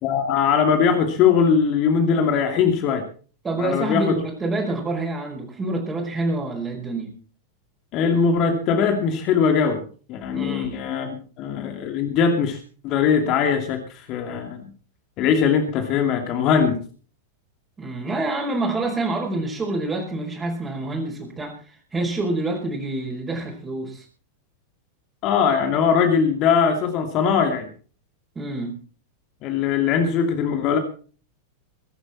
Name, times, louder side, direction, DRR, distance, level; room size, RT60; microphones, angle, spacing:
voice 1, 0.0-3.0 3.6-4.2 7.9-9.8 10.1-14.6 15.2-16.8 25.2-27.7 29.4-30.8, left 6 dB, 40° left, 5 dB, 2.6 m, -21 dB
voice 2, 3.4-7.1 10.3-10.8 17.8-24.0 28.3-28.8, right 2 dB, 15° right, -2 dB, 5.1 m, -27 dB
22.5 x 11.5 x 4.4 m, 0.40 s
figure-of-eight pair, 90°, 0 cm